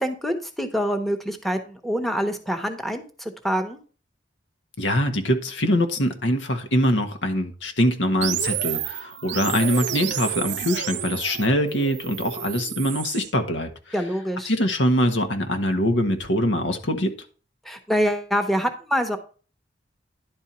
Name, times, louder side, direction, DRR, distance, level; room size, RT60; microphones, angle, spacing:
voice 1, 0.0-3.8 13.9-14.5 17.6-19.2, equal, ahead, 6 dB, 1.1 m, -25 dB
voice 2, 4.8-13.7 14.4-17.1, equal, 80° left, 6 dB, 1.5 m, -23 dB
sound 1, 8.2-13.3, right 10 dB, 70° right, 0.7 m, -30 dB
11.0 x 4.6 x 5.5 m, 0.38 s
head